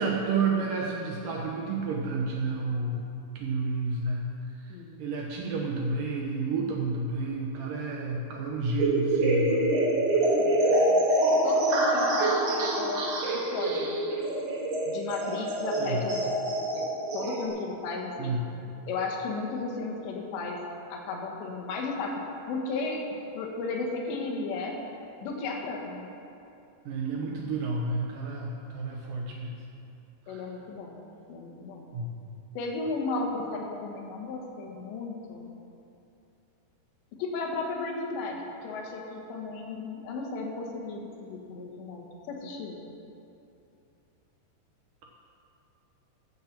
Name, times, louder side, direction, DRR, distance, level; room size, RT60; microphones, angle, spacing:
voice 1, 0.0-3.1 3.4-4.2 4.5-9.7 15.8-16.0 18.2-18.4 26.9-29.6 30.3-30.5 31.9-32.2, right 3 dB, 75° right, -2 dB, 2.0 m, -30 dB
sound 1, 8.8-17.5, right 1 dB, 60° right, 2.2 m, -26 dB
voice 2, 11.4-14.0 14.9-16.3 16.6-18.4 18.9-20.6 20.9-22.1 22.5-23.0 23.3-24.8 25.2-26.1 30.3-31.0 31.3-31.8 32.6-35.5 37.2-42.8, left 3 dB, 85° left, 0 dB, 3.5 m, -35 dB
13.0 x 5.9 x 7.3 m, 2.7 s
omnidirectional pair, 5.0 m